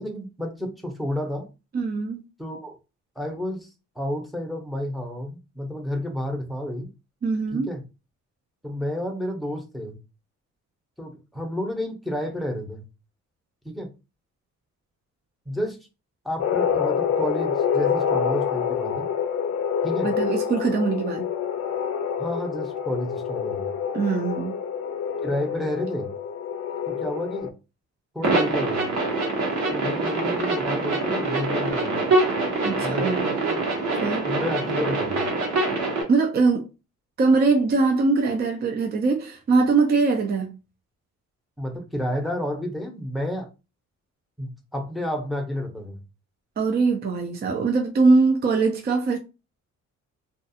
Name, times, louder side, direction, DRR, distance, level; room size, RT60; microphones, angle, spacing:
voice 1, 0.0-1.5 2.4-2.8 3.2-3.7 4.0-6.9 7.5-7.8 8.6-10.0 11.0-12.8 13.6-13.9 15.5-15.8 16.2-19.1 19.8-20.1 22.2-23.7 25.2-26.1 26.9-27.5 28.1-28.9 29.7-32.2 32.8-33.1 34.2-35.3 41.6-43.5 44.4-46.0, left 1 dB, ahead, 0.7 m, -30 dB
voice 2, 1.7-2.2 7.2-7.7 20.0-21.3 23.9-24.5 32.6-33.6 34.0-34.3 36.1-36.7 37.2-40.6 46.6-49.2, right 4 dB, 35° right, 0.4 m, -22 dB
sound 1, 16.4-27.5, left 7 dB, 60° left, 0.4 m, -27 dB
sound 2, 28.2-36.0, right 2 dB, 65° right, 1.0 m, -24 dB
2.3 x 2.3 x 2.7 m
cardioid pair, 90°, 30 cm